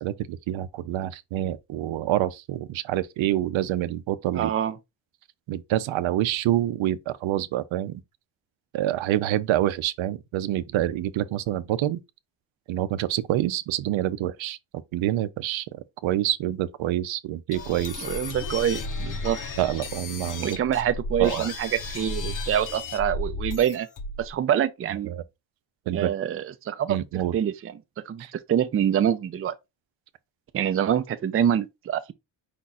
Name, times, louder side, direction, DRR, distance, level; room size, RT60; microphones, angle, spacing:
voice 1, 0.0-4.5 5.5-8.0 8.7-12.0 12.7-14.6 14.9-18.1 19.6-20.5 21.2-21.5 25.0-25.2 25.9-26.1 26.9-27.3 28.2-28.3, right 13 dB, 90° right, 0.6 m, -27 dB
voice 2, 4.3-4.7 18.0-19.4 20.4-23.9 24.2-25.1 25.9-27.0 27.3-27.7 28.1-29.5 30.5-32.1, right 9 dB, 30° right, 0.4 m, -25 dB
sound 1, 17.5-24.3, left 2 dB, 45° left, 0.8 m, -34 dB
5.1 x 2.4 x 4.0 m
wide cardioid pair, 155°, 45 cm